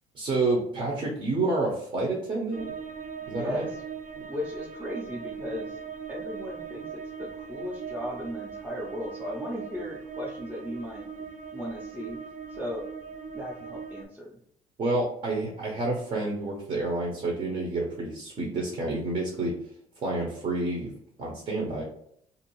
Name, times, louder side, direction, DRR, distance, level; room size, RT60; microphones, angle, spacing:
voice 1, 0.1-2.7 3.3-3.6 4.1-4.2 14.8-19.5 20.0-20.9 21.2-21.8, right 2 dB, 45° right, -1 dB, 0.9 m, -29 dB
sound 1, 2.5-14.0, right 6 dB, 60° right, 0.5 m, -40 dB
voice 2, 3.2-3.6 4.3-5.8 6.1-6.9 7.2-11.1 11.5-12.2 12.5-12.9 13.3-14.3, equal, 10° right, -4 dB, 0.6 m, -36 dB
2.6 x 2.4 x 3.0 m, 0.67 s
supercardioid pair, 80°, 15 cm